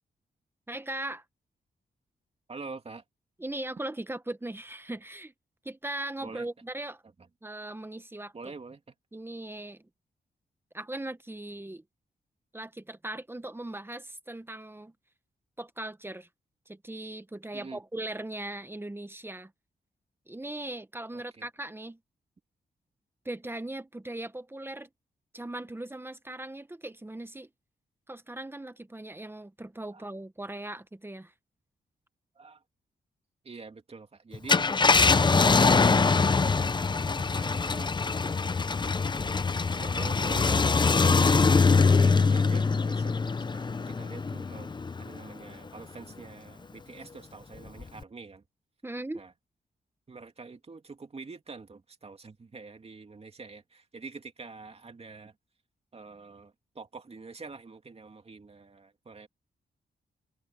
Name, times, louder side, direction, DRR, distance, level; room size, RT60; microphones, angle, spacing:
voice 1, 0.7-1.2 3.4-5.3 5.6-7.0 7.4-8.3 9.1-9.9 10.7-11.8 12.5-14.9 15.6-16.3 16.7-19.5 20.3-22.0 23.2-24.9 25.3-27.5 28.1-31.3 48.8-49.2, right 1 dB, 15° right, 1.1 m, -39 dB
voice 2, 2.5-3.0 6.2-6.5 8.3-8.8 17.5-17.8 21.1-21.5 29.9-30.1 32.4-32.6 33.4-36.7 37.0-37.9 39.7-48.4 49.1-49.3 50.1-55.4 55.9-59.3, right 4 dB, 35° right, 2.5 m, -45 dB
Car, 34.3-45.2 45.7-45.8 47.8-48.0, left 4 dB, 25° left, 0.6 m, -23 dB
cardioid pair, 95°, 17 cm